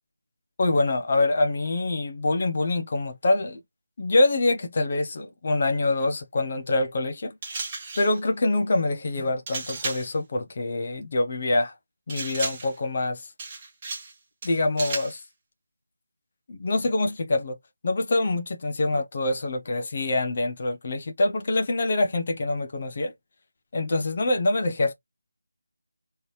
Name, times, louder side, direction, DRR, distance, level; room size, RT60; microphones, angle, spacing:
voice 1, 0.6-3.6 4.0-7.4 8.0-11.7 12.1-13.3 14.4-15.2 16.5-17.6 17.8-23.1 23.7-24.9, left 2 dB, 35° left, 0.8 m, -25 dB
sound 1, 7.4-8.2 9.5-10.2 12.1-12.8 13.4-14.1 14.4-15.2, right 3 dB, 20° right, 1.2 m, -34 dB
3.8 x 3.2 x 3.2 m
figure-of-eight pair, 160°, 0 cm